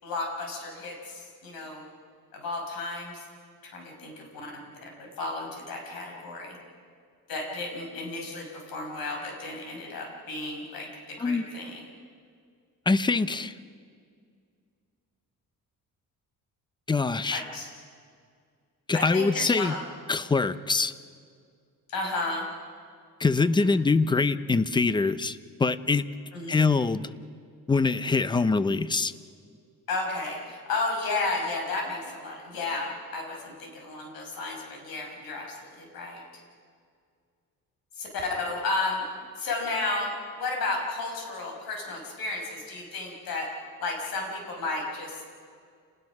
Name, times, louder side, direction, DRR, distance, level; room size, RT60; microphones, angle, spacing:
voice 1, 0.0-1.8 2.3-3.2 3.6-4.5 5.0-6.6 7.3-11.9 17.3-17.7 18.9-19.8 21.9-22.5 23.4-23.8 26.3-26.7 29.9-36.2 38.0-39.1 39.4-43.5 43.8-45.2, left 3 dB, 85° left, 1 dB, 5.9 m, -33 dB
voice 2, 12.9-13.5 16.9-17.4 18.9-19.7 20.1-20.9 23.2-26.0 26.5-27.1 27.7-29.1, left 4 dB, 15° left, 14 dB, 0.6 m, -24 dB
29.5 x 20.0 x 6.1 m, 2.2 s
cardioid pair, 135°, 35 cm